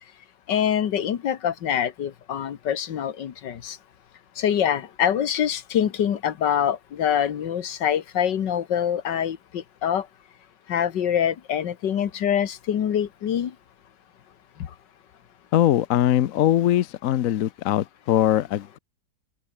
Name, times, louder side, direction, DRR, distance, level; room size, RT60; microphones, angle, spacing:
voice 1, 0.5-3.8 4.4-10.1 10.7-13.5, left 9 dB, 80° left, 1.9 m, -25 dB
voice 2, 15.5-18.8, left 12 dB, 60° left, 0.9 m, -21 dB
omnidirectional pair, 1.9 m